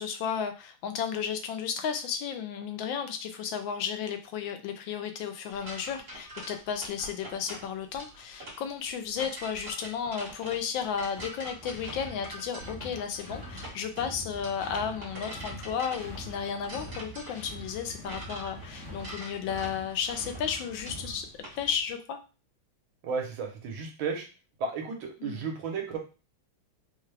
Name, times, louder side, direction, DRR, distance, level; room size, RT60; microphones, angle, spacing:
voice 1, 0.0-21.3 21.6-22.2 25.2-25.5, left 7 dB, 75° left, 7 dB, 1.3 m, -33 dB
sound 1, 5.5-21.6, right 1 dB, 40° right, 1.5 m, -44 dB
sound 2, 11.1-21.9, equal, 45° left, 1.0 m, -45 dB
voice 2, 23.0-24.3 24.6-26.0, right 5 dB, 80° right, 2 dB, 1.7 m, -33 dB
4.7 x 2.3 x 3.2 m, 0.32 s
omnidirectional pair, 2.2 m